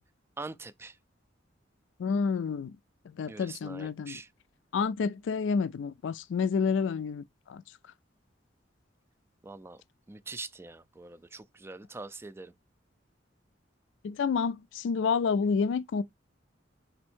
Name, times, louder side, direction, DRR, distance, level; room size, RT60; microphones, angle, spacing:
voice 1, 0.4-1.0 3.3-4.3 9.4-9.8 10.1-12.5, right 3 dB, 15° right, 0.3 m, -43 dB
voice 2, 2.0-2.8 3.2-4.2 4.7-7.2 7.5-7.6 14.0-16.0, left 5 dB, 70° left, 0.3 m, -29 dB
4.3 x 2.6 x 4.3 m
head